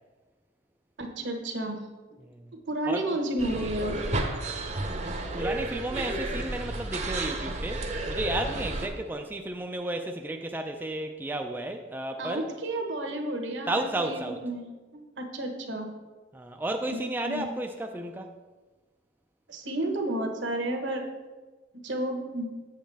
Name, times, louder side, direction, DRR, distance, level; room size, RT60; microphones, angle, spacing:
voice 1, 1.0-1.8 2.6-3.9 12.2-14.6 14.9-15.9 16.9-17.0 17.2-17.5 19.5-21.0 21.8-22.5, right 1 dB, 70° right, 4 dB, 1.1 m, -31 dB
sound 1, 3.4-8.9, right 2 dB, 35° right, 0.7 m, -32 dB
voice 2, 5.3-12.4 13.7-14.4 16.3-18.3, right 1 dB, 10° right, 4 dB, 0.3 m, -33 dB
7.5 x 7.4 x 3.4 m, 1.3 s
head